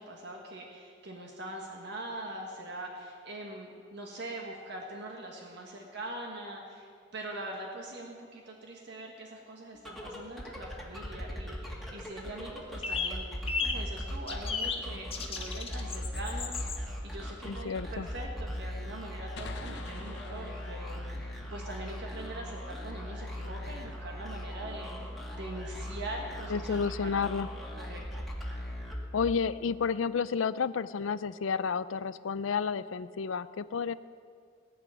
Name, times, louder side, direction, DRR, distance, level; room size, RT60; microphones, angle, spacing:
voice 1, 0.0-27.2 27.8-28.2, right 1 dB, 60° right, 0 dB, 1.6 m, -43 dB
sound 1, 9.7-29.5, equal, ahead, 1.8 m, -39 dB
sound 2, 12.8-13.2 13.5-13.8 14.3-14.8 15.1-16.8, left 5 dB, 30° left, 1.3 m, -33 dB
voice 2, 17.4-18.1 26.5-27.5 29.1-33.9, left 6 dB, 90° left, 16 dB, 0.5 m, -31 dB
sound 3, 19.4-22.8, left 3 dB, 65° left, 1.0 m, -48 dB
18.5 x 6.2 x 9.3 m, 2.2 s
head